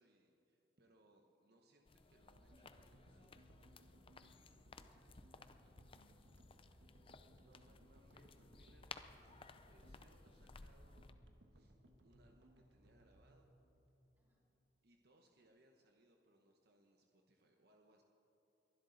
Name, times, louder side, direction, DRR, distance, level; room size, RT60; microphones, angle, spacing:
voice 1, 0.0-4.0 7.4-11.8 12.0-13.6 14.8-18.0, right 1 dB, 60° right, 2 dB, 1.0 m, -72 dB
sound 1, 1.8-11.1, left 4 dB, 30° left, 0.5 m, -59 dB
sound 2, 2.3-14.7, equal, 90° right, 1.4 m, -66 dB
voice 2, 4.7-7.1 14.2-14.4, right 1 dB, 10° right, -7 dB, 4.1 m, -81 dB
21.5 x 12.0 x 4.0 m, 2.9 s
head